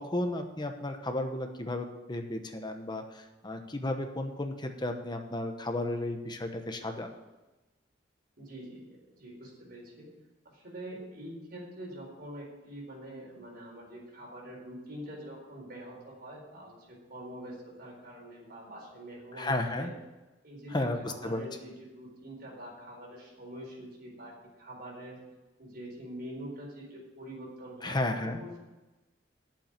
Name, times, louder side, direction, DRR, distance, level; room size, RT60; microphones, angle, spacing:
voice 1, 0.0-7.2 19.3-19.9 20.7-21.4 27.8-28.4, left 1 dB, 25° left, 6 dB, 1.0 m, -33 dB
voice 2, 8.4-10.1 10.5-19.9 20.4-25.2 25.6-28.6, right 1 dB, 55° right, -2 dB, 4.3 m, -45 dB
8.7 x 7.4 x 8.9 m, 1.1 s
head